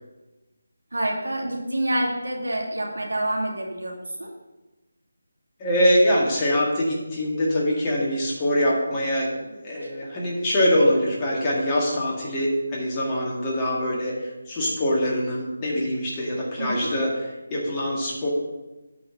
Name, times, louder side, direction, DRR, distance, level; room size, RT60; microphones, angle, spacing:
voice 1, 0.9-3.9 4.2-4.3 9.8-9.9 16.6-16.9, right 1 dB, 80° right, -1 dB, 2.5 m, -27 dB
voice 2, 5.6-17.1 17.5-18.3, equal, 20° left, -4 dB, 2.0 m, -23 dB
8.4 x 4.8 x 7.1 m, 1.1 s
figure-of-eight pair, 160°, 0 cm